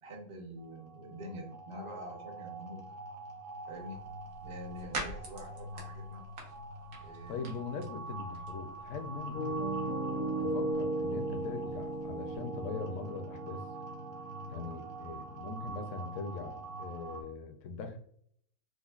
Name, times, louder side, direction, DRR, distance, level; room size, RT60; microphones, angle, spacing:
voice 1, 0.0-2.9 3.7-4.1 4.4-6.2 7.0-7.5, equal, 30° right, 1 dB, 0.6 m, -46 dB
sound 1, 0.6-17.2, right 2 dB, 55° right, 1.1 m, -45 dB
sound 2, 3.7-12.4, right 2 dB, 75° right, 1.3 m, -48 dB
voice 2, 7.3-9.6 10.4-13.6 14.5-18.0, left 4 dB, 65° left, 5 dB, 0.9 m, -41 dB
Piano, 9.3-17.2, right 2 dB, 90° left, 1.3 m, -37 dB
5.0 x 2.1 x 2.4 m, 0.63 s
omnidirectional pair, 1.5 m